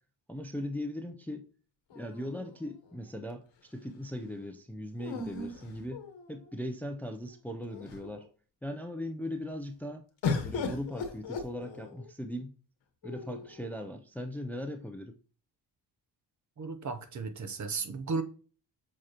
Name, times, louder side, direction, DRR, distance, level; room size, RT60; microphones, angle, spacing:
voice 1, 0.3-1.5 1.9-8.3 8.6-10.1 10.4-12.5 13.0-15.2, left 1 dB, 5° left, 0.5 m, -39 dB
sound 1, 1.9-3.0 5.0-6.5 7.3-7.4 7.7-8.3 10.2-12.1 13.0-13.7, left 4 dB, 80° left, 1.3 m, -37 dB
voice 2, 16.6-18.2, right 4 dB, 40° right, 0.7 m, -34 dB
7.3 x 4.7 x 2.9 m
cardioid pair, 110°, 45 cm